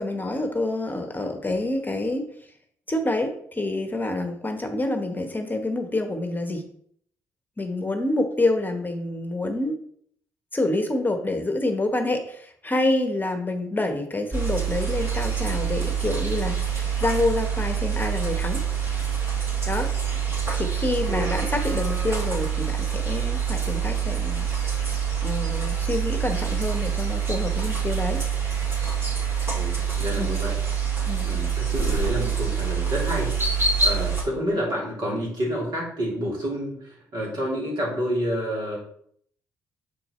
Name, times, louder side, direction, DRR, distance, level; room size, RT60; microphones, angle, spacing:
voice 1, 0.0-2.3 2.9-6.6 7.6-9.7 10.5-18.6 19.7-19.9 20.5-24.5 25.2-28.2 30.2-30.4 31.1-31.3, left 2 dB, 20° left, 6 dB, 1.1 m, -27 dB
sound 1, 14.3-34.2, right 7 dB, 30° right, 3.0 m, -26 dB
voice 2, 29.5-30.6 31.2-33.3 33.8-38.8, equal, 55° right, -3 dB, 3.0 m, -29 dB
6.5 x 4.4 x 4.3 m, 0.64 s
hypercardioid pair, 45°, 8 cm